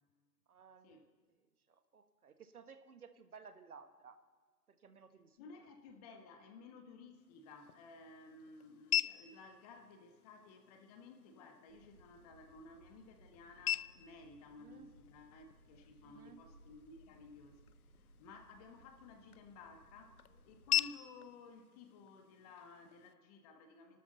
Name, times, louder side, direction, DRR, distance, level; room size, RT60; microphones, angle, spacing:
voice 1, 0.5-1.0 1.7-4.2 4.7-5.4 14.6-14.9 16.0-16.4, right 6 dB, 65° right, 9 dB, 1.4 m, -57 dB
voice 2, 5.4-24.0, left 3 dB, 25° left, 6 dB, 1.3 m, -56 dB
sound 1, 7.1-23.1, left 10 dB, 65° left, 0.6 m, -43 dB
sound 2, 11.7-20.9, right 2 dB, 45° right, 2.8 m, -65 dB
28.0 x 12.5 x 4.0 m, 1.4 s
figure-of-eight pair, 135°, 47 cm